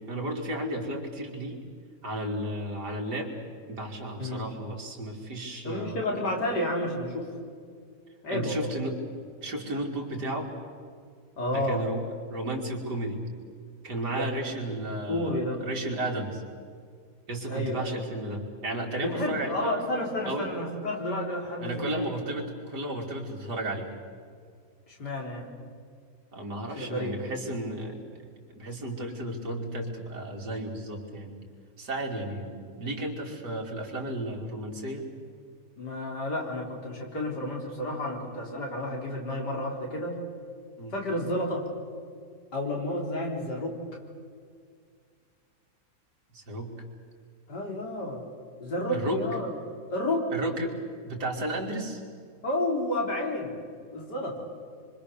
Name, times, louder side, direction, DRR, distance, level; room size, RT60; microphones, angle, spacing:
voice 1, 0.1-1.6 2.0-3.3 3.7-6.1 8.3-9.0 9.4-10.5 11.5-13.2 13.8-16.4 17.3-19.7 20.2-20.5 21.6-23.9 26.3-28.0 28.5-31.3 31.8-35.1 40.8-41.0 46.3-46.7 48.9-49.2 50.3-50.8 51.0-52.0, right 1 dB, 80° right, 0 dB, 3.8 m, -33 dB
voice 2, 5.6-7.3 8.2-8.7 11.4-11.8 14.1-14.3 15.1-15.7 17.5-17.9 19.0-22.1 24.9-25.4 26.8-27.1 35.8-40.2 40.9-41.7 42.5-43.8 47.5-48.2 48.6-49.5 49.9-50.3 52.4-53.6 53.9-54.4, left 1 dB, 85° left, 0 dB, 4.5 m, -31 dB
26.0 x 25.0 x 6.9 m, 2.2 s
omnidirectional pair, 1.7 m